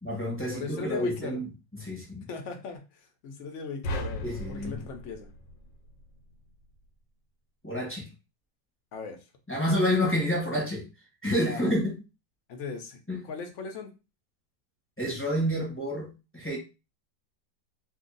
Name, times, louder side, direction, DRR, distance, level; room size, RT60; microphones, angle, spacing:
voice 1, 0.0-1.4 1.8-2.3 4.2-4.8 7.6-8.1 9.5-10.8 11.2-12.0 13.1-13.2 15.0-16.6, equal, 10° left, 0.8 m, -29 dB
voice 2, 0.5-1.4 2.3-5.3 8.9-9.2 11.5-11.7 12.5-13.0 13.3-13.9, left 5 dB, 60° left, 0.8 m, -38 dB
sound 1, 3.8-6.2, equal, 85° left, 1.4 m, -36 dB
2.7 x 2.7 x 3.9 m
omnidirectional pair, 1.9 m